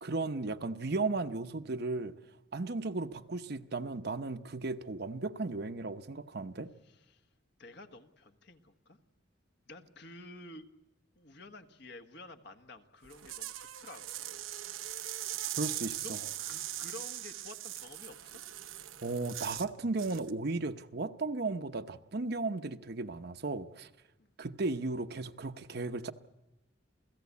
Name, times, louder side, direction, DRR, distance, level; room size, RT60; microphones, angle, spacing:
voice 1, 0.0-2.1 2.5-6.7 15.6-16.2 19.0-23.9 24.4-26.1, right 3 dB, 55° right, 0.9 m, -35 dB
voice 2, 6.8-7.3 7.6-9.0 9.6-10.6 11.1-14.4 16.0-18.4 24.2-24.3, left 2 dB, 55° left, 1.5 m, -51 dB
sound 1, 13.0-19.7 20.0-20.3, right 13 dB, 90° right, 1.0 m, -40 dB
28.5 x 17.0 x 8.4 m
head